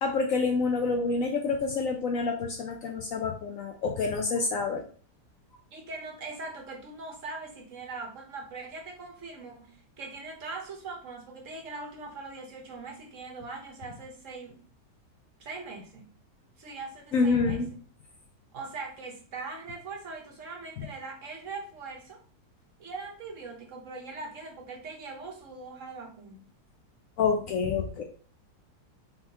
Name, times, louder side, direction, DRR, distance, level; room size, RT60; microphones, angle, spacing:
voice 1, 0.0-4.8 17.1-17.7 27.2-28.0, left 4 dB, 65° left, 4 dB, 0.9 m, -27 dB
voice 2, 5.7-14.6 15.4-16.1 16.6-17.6 18.5-22.2 22.8-26.5, right 3 dB, 55° right, 2 dB, 1.1 m, -41 dB
4.1 x 3.8 x 2.8 m, 0.41 s
omnidirectional pair, 1.8 m